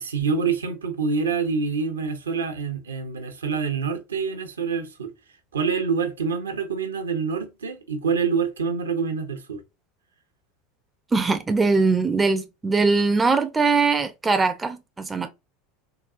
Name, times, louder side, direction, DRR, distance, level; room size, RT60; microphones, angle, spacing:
voice 1, 0.0-5.1 5.5-9.6, right 5 dB, 75° right, 0.7 m, -26 dB
voice 2, 11.1-15.3, right 4 dB, 15° right, 0.4 m, -21 dB
3.8 x 2.3 x 2.4 m
figure-of-eight pair, 75°, 0 cm